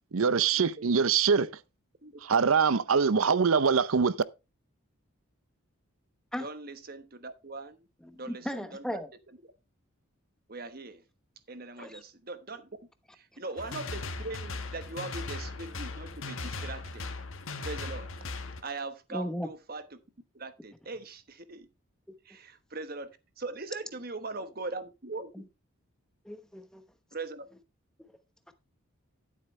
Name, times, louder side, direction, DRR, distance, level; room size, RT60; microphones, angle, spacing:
voice 1, 0.1-1.5 2.2-4.2, right 6 dB, 75° right, 0.6 m, -24 dB
voice 2, 2.0-2.4 6.4-7.9 8.1-9.0 9.3-9.4 10.5-11.0 11.5-12.7 13.1-17.1 17.6-18.1 18.6-20.0 20.3-21.7 22.2-25.4 27.1-27.5, right 3 dB, 45° right, 1.2 m, -41 dB
voice 3, 8.0-9.1 11.8-12.0 19.1-19.5 26.2-26.8 28.0-28.1 28.5-28.6, equal, 5° left, 0.9 m, -36 dB
sound 1, 13.6-18.6, left 3 dB, 70° left, 1.5 m, -38 dB
12.5 x 7.8 x 3.2 m
head